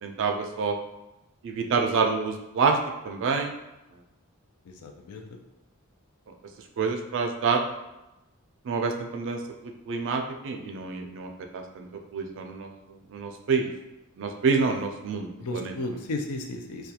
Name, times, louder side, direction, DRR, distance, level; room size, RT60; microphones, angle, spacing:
voice 1, 0.0-0.7 1.4-2.8 3.0-3.5 6.8-7.6 8.7-9.4 9.9-11.9 12.1-12.7 13.1-13.7 14.2-15.7, right 5 dB, 60° right, 4 dB, 0.3 m, -27 dB
voice 2, 4.7-5.4 15.4-16.9, left 2 dB, 80° left, 4 dB, 0.4 m, -34 dB
2.3 x 2.2 x 2.8 m, 0.96 s
head